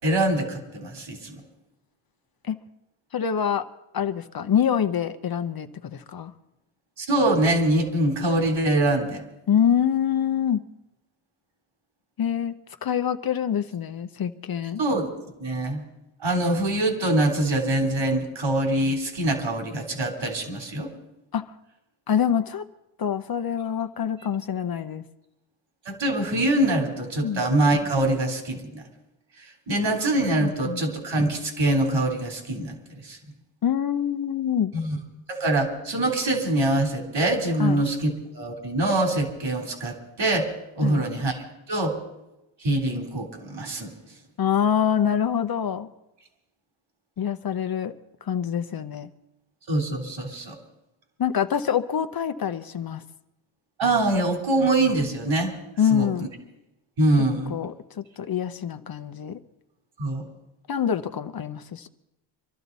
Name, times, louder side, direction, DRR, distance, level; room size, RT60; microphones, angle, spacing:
voice 1, 0.0-1.4 7.0-9.2 14.8-15.1 15.4-15.8 16.2-20.9 25.9-28.8 29.7-32.8 33.0-33.2 34.7-35.0 35.3-40.5 40.8-41.4 41.7-41.9 42.6-43.9 49.7-50.6 53.8-55.5 55.9-56.1 57.0-57.6 60.0-60.3, right 1 dB, 65° right, 2 dB, 3.6 m, -24 dB
voice 2, 3.1-3.7 3.9-6.3 9.5-10.6 12.2-12.5 12.8-14.8 21.3-21.5 22.1-22.6 23.0-25.0 27.2-27.4 30.4-30.8 33.6-34.7 37.6-37.8 40.8-41.0 44.4-45.9 47.2-47.9 48.2-49.1 51.2-53.0 55.8-56.3 57.5-59.4 60.7-61.9, left 8 dB, 45° left, 9 dB, 0.8 m, -25 dB
24.5 x 12.5 x 4.1 m, 0.90 s
cardioid pair, 100°, 49 cm